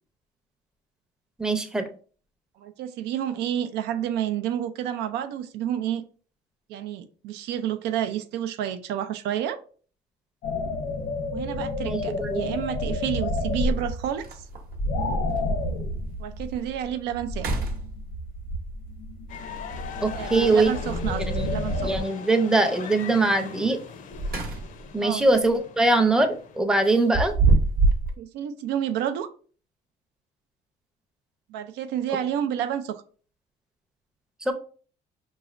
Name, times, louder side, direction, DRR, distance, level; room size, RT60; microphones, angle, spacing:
voice 1, 1.4-1.8 11.8-12.5 20.0-20.7 21.3-21.5 21.8-23.8 24.9-27.3 34.4-34.5, right 2 dB, 5° right, 5 dB, 0.5 m, -22 dB
voice 2, 2.6-6.0 6.7-9.6 11.3-14.2 16.2-17.6 20.1-22.0 25.0-25.3 28.2-29.3 31.5-33.0, right 10 dB, 85° right, 10 dB, 0.4 m, -30 dB
sound 1, 10.4-22.0, left 1 dB, 90° left, 1.1 m, -30 dB
sound 2, 11.5-11.6 13.4-13.5 13.9-14.0 14.2-14.8 15.4-15.5 16.0-16.1 16.5-16.9 17.3-18.4 20.5-21.1 23.9-24.9 25.3-25.5 26.8-28.1, right 3 dB, 60° right, 0.9 m, -25 dB
sound 3, 19.3-26.6, left 6 dB, 50° left, 0.6 m, -40 dB
4.9 x 3.1 x 2.5 m, 0.42 s
cardioid pair, 110°, 17 cm